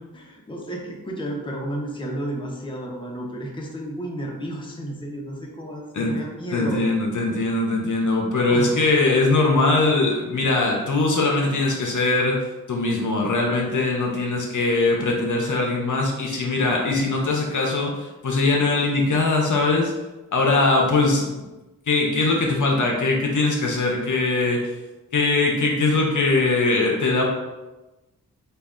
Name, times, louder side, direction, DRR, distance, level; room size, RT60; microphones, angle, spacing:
voice 1, 0.1-6.8 8.5-8.9, right 1 dB, 15° left, -2 dB, 0.7 m, -32 dB
voice 2, 6.5-19.9 20.3-21.5 21.9-24.7 25.1-27.2, left 3 dB, 55° left, 0 dB, 0.6 m, -21 dB
3.2 x 2.3 x 3.6 m, 1.1 s
wide cardioid pair, 70°, 36 cm